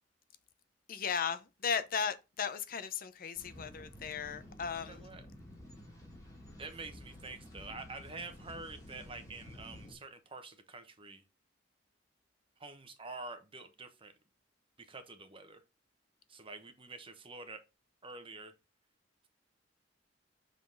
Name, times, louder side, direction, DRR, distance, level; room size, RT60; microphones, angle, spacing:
voice 1, 0.9-5.1, left 6 dB, 50° left, 0.6 m, -36 dB
sound 1, 3.4-9.9, left 1 dB, 20° left, 2.6 m, -52 dB
voice 2, 4.8-5.3 6.6-11.2 12.6-14.1 14.8-15.6 16.3-17.6 18.0-18.5, right 3 dB, 30° right, 1.0 m, -47 dB
7.3 x 3.9 x 3.8 m
head